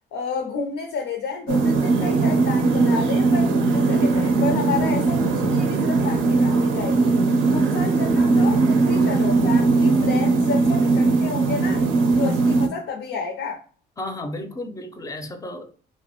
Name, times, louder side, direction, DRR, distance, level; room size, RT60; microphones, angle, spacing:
voice 1, 0.1-7.1 7.5-11.9 12.2-13.6, left 5 dB, 80° left, 0.5 m, -31 dB
sound 1, 1.5-12.7, right 3 dB, 80° right, 0.5 m, -19 dB
voice 2, 14.0-15.8, left 1 dB, 15° left, 0.4 m, -33 dB
2.5 x 2.1 x 2.8 m
cardioid pair, 90°, 20 cm